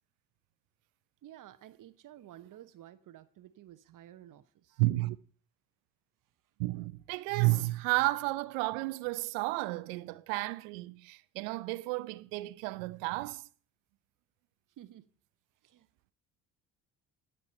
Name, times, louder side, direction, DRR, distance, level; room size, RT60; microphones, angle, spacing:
voice 1, 1.2-4.8 14.8-15.1 15.6-15.9, right 12 dB, 55° right, 1.0 m, -53 dB
voice 2, 4.8-5.2 6.6-13.5, right 21 dB, 75° right, 0.7 m, -32 dB
18.5 x 6.9 x 4.4 m
hypercardioid pair, 60°, 39 cm